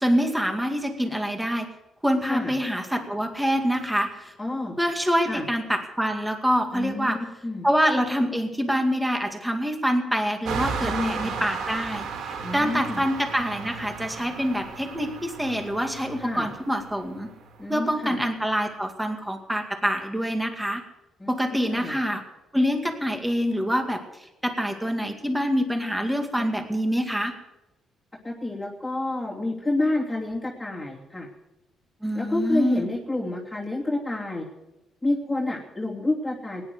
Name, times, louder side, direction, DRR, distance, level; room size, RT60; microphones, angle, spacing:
voice 1, 0.0-1.7 2.0-4.3 4.8-7.2 7.6-17.3 17.7-20.8 21.3-22.2 22.5-27.3 32.0-32.9, equal, 5° right, 5 dB, 2.2 m, -26 dB
voice 2, 4.4-4.7 5.3-5.4 6.7-7.2 7.4-7.7 10.8-11.3 12.4-13.0 16.2-16.5 17.6-18.2 21.2-22.0 26.4-26.7 28.2-31.3 32.1-34.4 35.0-36.6, left 2 dB, 10° left, -4 dB, 3.0 m, -29 dB
sound 1, 10.5-18.5, right 5 dB, 80° right, 1.8 m, -35 dB
17.0 x 10.5 x 7.9 m, 1.0 s
cardioid pair, 90°, 0 cm